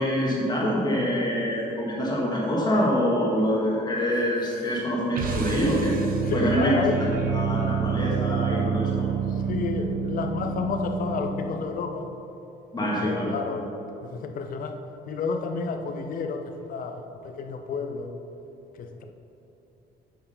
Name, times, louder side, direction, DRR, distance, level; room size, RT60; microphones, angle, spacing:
voice 1, 0.0-5.9 6.3-9.1 12.7-13.3, equal, 25° left, -5 dB, 1.6 m, -25 dB
sound 1, 5.1-11.6, right 6 dB, 55° right, 0.9 m, -28 dB
voice 2, 6.3-7.0 9.5-12.1 12.8-13.7 14.0-14.8 15.1-18.1 18.8-19.0, left 4 dB, 55° left, 6 dB, 0.8 m, -30 dB
8.7 x 4.8 x 5.5 m, 3.0 s
cardioid pair, 110°, 17 cm